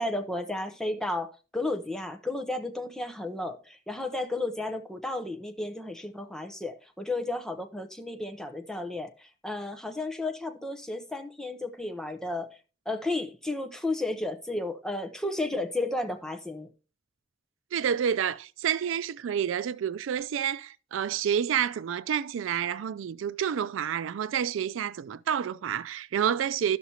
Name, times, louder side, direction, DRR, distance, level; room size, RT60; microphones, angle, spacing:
voice 1, 0.0-12.5 12.9-16.7, left 2 dB, 5° left, 0.7 m, -33 dB
voice 2, 17.7-26.8, right 8 dB, 85° right, 0.3 m, -29 dB
12.5 x 5.8 x 2.8 m
head